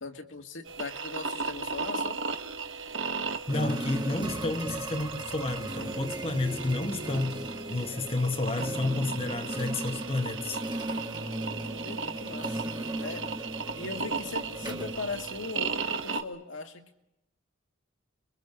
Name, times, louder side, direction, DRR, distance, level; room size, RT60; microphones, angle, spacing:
voice 1, 0.0-2.2 11.5-12.7 13.0-13.3 13.8-17.0, left 3 dB, 70° left, 2.3 m, -39 dB
sound 1, 0.7-16.2, right 5 dB, 70° right, 1.4 m, -36 dB
voice 2, 3.5-10.6, left 2 dB, 30° left, 0.9 m, -31 dB
sound 2, 3.5-15.8, right 1 dB, 20° right, 1.6 m, -37 dB
30.0 x 23.0 x 5.1 m
head